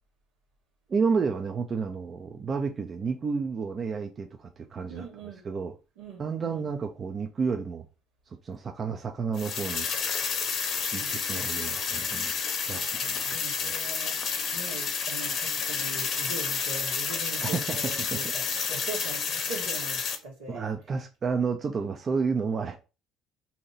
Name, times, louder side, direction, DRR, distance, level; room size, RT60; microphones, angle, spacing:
voice 1, 0.9-5.1 5.4-5.7 6.2-7.8 8.3-9.9 10.9-12.4 12.7-13.7 17.4-18.3 20.5-22.8, right 5 dB, 40° right, 0.5 m, -31 dB
voice 2, 4.9-5.4 6.0-6.7 10.9-11.1 12.7-20.6, right 3 dB, 90° right, 1.5 m, -41 dB
sound 1, 9.3-20.2, left 6 dB, 55° left, 0.8 m, -30 dB
2.9 x 2.8 x 3.9 m
hypercardioid pair, 65°, 0 cm